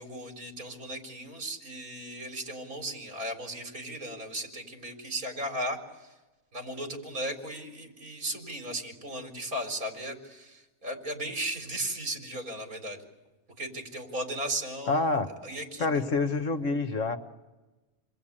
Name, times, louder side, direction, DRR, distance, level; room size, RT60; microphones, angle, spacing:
voice 1, 0.0-6.1 6.5-13.0 13.6-15.9, right 1 dB, 70° right, 4 dB, 4.6 m, -36 dB
voice 2, 14.9-15.3 15.8-17.2, left 3 dB, 60° left, 7 dB, 1.5 m, -27 dB
29.0 x 22.0 x 8.7 m, 1.1 s
omnidirectional pair, 1.5 m